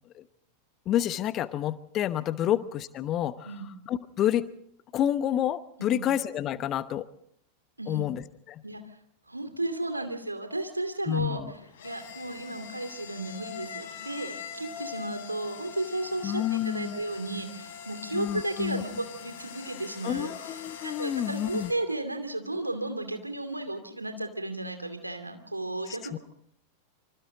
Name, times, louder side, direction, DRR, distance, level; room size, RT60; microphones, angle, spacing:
voice 1, 0.9-3.5 3.9-4.5 4.9-7.0 7.9-8.6 11.1-11.5 16.2-17.0 18.1-18.8 20.0-21.7 25.9-26.2, left 11 dB, 30° left, 15 dB, 1.0 m, -29 dB
voice 2, 9.3-11.4 11.8-20.3 20.8-26.2, right 2 dB, 85° right, 7 dB, 2.6 m, -34 dB
sound 1, 11.4-21.7, left 8 dB, 55° left, 4.0 m, -43 dB
26.0 x 25.5 x 3.9 m, 0.71 s
figure-of-eight pair, 90°, 0 cm